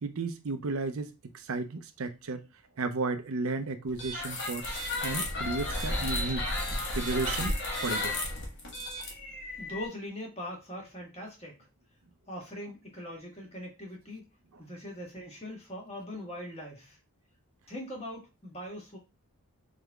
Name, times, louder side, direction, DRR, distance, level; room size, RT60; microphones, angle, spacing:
voice 1, 0.0-2.5 2.8-6.5 6.9-8.2, right 3 dB, 70° right, 0.6 m, -34 dB
sound 1, 3.9-9.9, left 1 dB, 55° left, 1.4 m, -33 dB
voice 2, 9.6-11.6 12.3-14.3 14.6-17.0 17.7-19.0, left 1 dB, 30° left, 1.6 m, -41 dB
4.1 x 3.7 x 3.4 m
head